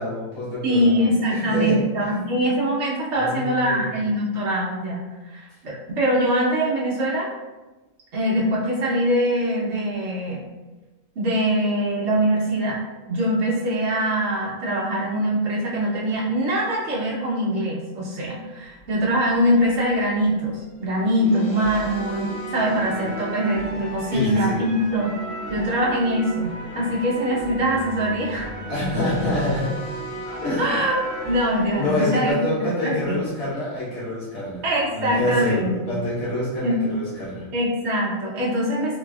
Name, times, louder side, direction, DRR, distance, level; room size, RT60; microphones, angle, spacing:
voice 1, 0.0-1.0 1.3-2.2 3.1-4.0 24.1-24.6 28.7-29.7 30.4-30.8 31.7-34.6 34.9-37.5, left 1 dB, 85° left, -9 dB, 1.7 m, -26 dB
voice 2, 0.6-7.3 8.1-10.4 11.1-12.8 13.1-25.1 25.5-28.5 30.6-33.1 34.6-36.0 36.6-36.8 37.5-39.0, equal, 55° right, -5 dB, 1.2 m, -23 dB
sound 1, 18.8-19.9 20.7-32.3, right 1 dB, 60° left, 1.1 m, -35 dB
4.1 x 2.9 x 2.3 m, 1.1 s
omnidirectional pair, 1.4 m